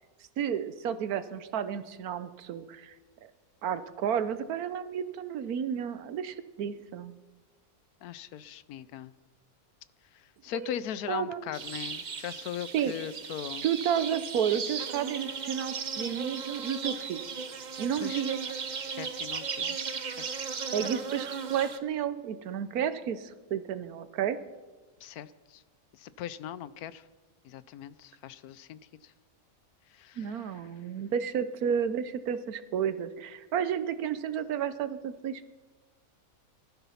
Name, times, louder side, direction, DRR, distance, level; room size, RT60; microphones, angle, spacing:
voice 1, 0.4-2.9 3.2-3.3 3.6-7.2 10.5-10.7 11.1-11.4 12.7-12.9 13.6-17.2 17.8-18.4 20.7-24.4 30.2-35.5, right 8 dB, 80° right, 13 dB, 1.3 m, -31 dB
voice 2, 8.0-9.1 10.1-13.6 18.0-18.2 18.9-19.8 20.0-20.3 25.0-25.6 26.0-27.0 27.4-29.1 29.9-30.3, left 10 dB, 80° left, 16 dB, 1.2 m, -40 dB
sound 1, 11.5-21.8, right 5 dB, 40° right, 0.7 m, -36 dB
19.0 x 12.5 x 5.7 m, 1.3 s
omnidirectional pair, 1.6 m